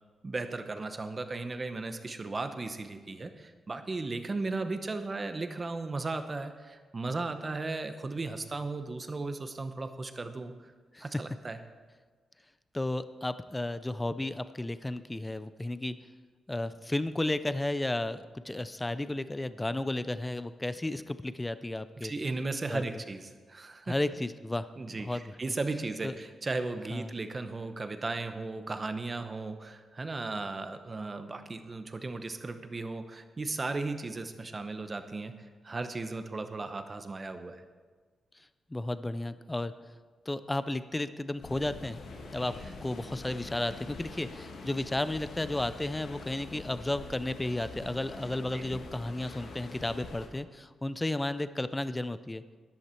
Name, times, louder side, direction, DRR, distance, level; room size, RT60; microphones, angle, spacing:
voice 1, 0.2-10.5 11.0-11.6 22.0-23.9 24.8-35.3 35.6-37.6 48.5-48.8, right 3 dB, 25° right, 8 dB, 0.8 m, -36 dB
voice 2, 12.7-16.0 16.5-22.1 22.7-22.8 23.9-25.4 26.0-26.2 26.9-27.1 38.7-39.7 40.3-42.0 42.3-52.4, left 1 dB, 10° left, 13 dB, 0.4 m, -33 dB
sound 1, 41.4-50.3, left 3 dB, 85° left, 2.1 m, -45 dB
13.0 x 11.5 x 4.5 m, 1.4 s
wide cardioid pair, 155°, 0 cm